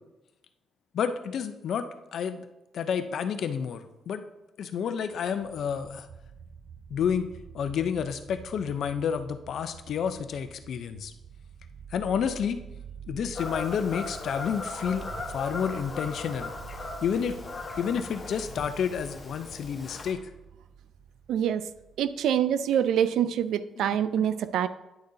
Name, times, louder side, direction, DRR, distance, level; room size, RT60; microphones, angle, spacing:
voice 1, 0.9-2.5 2.7-4.2 4.6-6.1 6.9-11.1 11.9-12.6 13.1-16.5 17.0-17.4 17.8-20.2 23.8-24.4, left 7 dB, 65° left, 10 dB, 0.6 m, -30 dB
sound 1, 5.1-22.5, right 7 dB, 45° right, 2.4 m, -48 dB
Fowl / Bird vocalization bird call bird song, 13.3-20.1, left 3 dB, 35° left, 1.4 m, -38 dB
voice 2, 21.3-21.6 22.0-24.7, right 9 dB, 75° right, 13 dB, 0.4 m, -25 dB
9.9 x 6.7 x 2.7 m, 1.0 s
cardioid pair, 90°, 0 cm